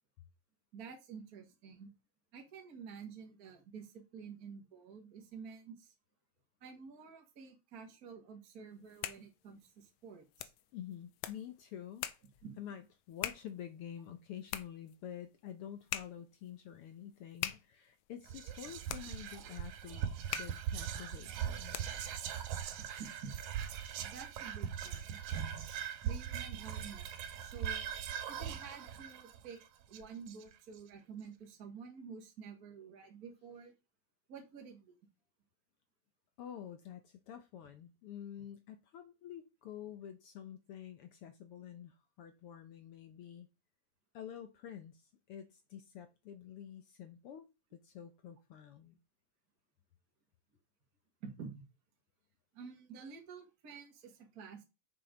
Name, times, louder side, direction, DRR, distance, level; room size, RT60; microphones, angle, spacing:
voice 1, 0.7-1.9 2.3-5.9 6.6-10.5 12.4-12.6 23.0-23.3 24.0-25.2 26.0-27.1 27.4-27.9 28.3-29.6 29.9-33.7 34.3-35.0 51.2-51.5 52.5-54.6, right 6 dB, 40° right, 2 dB, 1.5 m, -50 dB
sound 1, 8.7-22.2, left 13 dB, 90° left, 2.0 m, -46 dB
voice 2, 10.7-12.1 12.6-21.8 36.4-43.5 44.1-47.4 47.7-49.0, left 10 dB, 70° left, 8 dB, 1.3 m, -48 dB
Whispering, 18.3-30.8, right 9 dB, 85° right, 2.4 m, -40 dB
6.8 x 6.0 x 5.0 m, 0.27 s
omnidirectional pair, 3.3 m